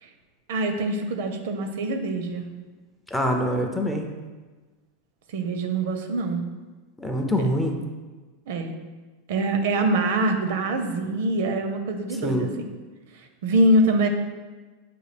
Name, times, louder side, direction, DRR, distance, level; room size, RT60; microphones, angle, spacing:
voice 1, 0.5-2.5 5.3-6.4 8.5-8.7 9.3-12.5 13.4-14.1, right 1 dB, 70° right, 6 dB, 0.5 m, -24 dB
voice 2, 3.1-4.1 7.0-7.8 12.2-12.5, equal, 5° left, 2 dB, 0.4 m, -24 dB
6.7 x 2.3 x 3.3 m, 1.3 s
supercardioid pair, 155°, 0 cm